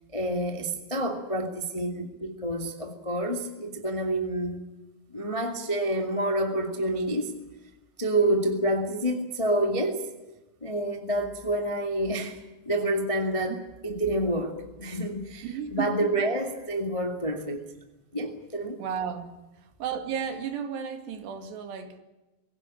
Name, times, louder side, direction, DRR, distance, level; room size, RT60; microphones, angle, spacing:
voice 1, 0.1-4.6 5.1-7.3 8.0-10.1 10.6-12.4 12.6-13.6 13.8-15.4 15.7-17.6 18.1-18.8, right 1 dB, 15° left, 5 dB, 1.0 m, -28 dB
voice 2, 15.4-16.0 18.8-19.3 19.6-22.0, right 7 dB, 80° right, 7 dB, 4.4 m, -33 dB
23.5 x 17.0 x 10.0 m, 1.0 s
omnidirectional pair, 4.8 m